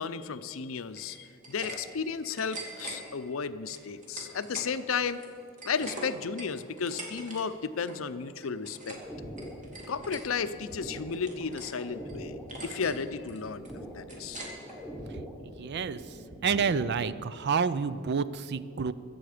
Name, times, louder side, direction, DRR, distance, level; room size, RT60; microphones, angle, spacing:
voice 1, 0.0-5.2 5.6-9.0 9.9-13.7 13.9-14.4, left 5 dB, 80° left, 13 dB, 0.6 m, -33 dB
sound 1, 0.9-1.8 2.1-3.0 3.7-4.7 5.1-7.4 7.7-8.0 8.4-9.1 9.4-10.2 10.7-11.8 12.1-12.2 12.5-13.0 13.3-14.8, right 2 dB, 40° right, 2.5 m, -43 dB
sound 2, 8.9-17.1, equal, ahead, 1.2 m, -44 dB
voice 2, 15.6-16.0 16.4-18.9, right 5 dB, 55° right, 15 dB, 0.5 m, -28 dB
23.0 x 7.8 x 5.0 m, 2.4 s
head